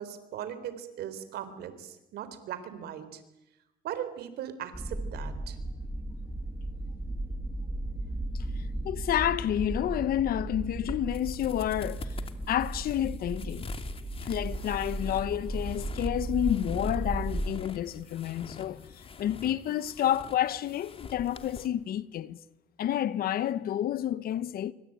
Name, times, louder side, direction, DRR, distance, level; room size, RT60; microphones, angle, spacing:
voice 1, 0.0-3.2 3.8-5.6, right 10 dB, 70° right, 3.9 m, -39 dB
sound 1, 4.7-17.5, right 1 dB, 10° right, 2.3 m, -35 dB
voice 2, 8.6-12.2 12.5-13.7 14.2-22.4 22.8-24.7, left 11 dB, 60° left, 1.2 m, -30 dB
sound 2, 10.8-21.7, left 5 dB, 35° left, 2.6 m, -46 dB
27.0 x 24.5 x 9.0 m
cardioid pair, 110°, 17 cm